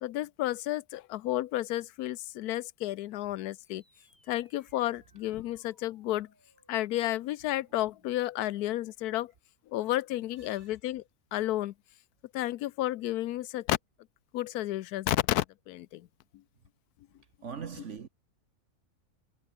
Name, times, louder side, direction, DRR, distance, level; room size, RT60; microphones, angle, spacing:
voice 1, 0.0-3.8 4.3-6.3 6.7-9.3 9.7-11.0 11.3-11.7 12.3-13.8 14.3-16.1, left 14 dB, 85° left, 1.1 m, -31 dB
sound 1, 3.4-8.5, right 1 dB, 10° right, 4.7 m, -69 dB
voice 2, 17.4-18.1, right 6 dB, 50° right, 1.5 m, -40 dB
omnidirectional pair, 1.6 m